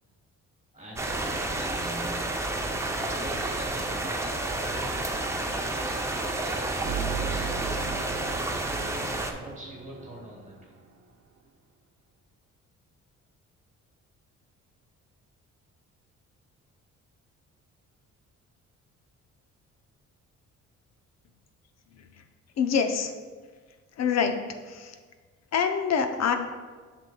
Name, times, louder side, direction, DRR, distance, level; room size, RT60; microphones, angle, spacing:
voice 1, 0.7-2.3 2.8-5.0 5.7-7.7 8.3-10.7, right 2 dB, 25° right, -3 dB, 1.4 m, -43 dB
sound 1, 1.0-9.3, right 2 dB, 10° right, 0.6 m, -30 dB
sound 2, 6.8-10.9, right 7 dB, 55° right, 0.7 m, -37 dB
voice 2, 22.6-23.1 24.0-25.0 25.5-26.4, left 6 dB, 60° left, 7 dB, 0.7 m, -26 dB
7.9 x 6.0 x 2.3 m, 1.5 s
cardioid pair, 90°, 30 cm